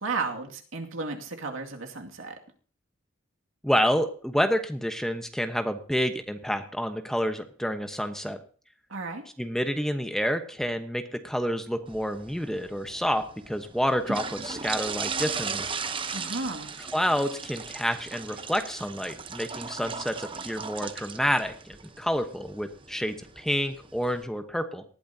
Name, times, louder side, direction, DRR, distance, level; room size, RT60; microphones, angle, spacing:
voice 1, 0.0-2.4 8.9-9.2 16.1-16.7, right 3 dB, 80° right, 3 dB, 2.3 m, -33 dB
voice 2, 3.6-8.4 9.4-15.7 16.9-24.8, equal, ahead, 7 dB, 1.1 m, -29 dB
sound 1, 11.9-24.2, right 5 dB, 25° right, 0.9 m, -37 dB
19.0 x 12.5 x 2.8 m, 0.42 s
head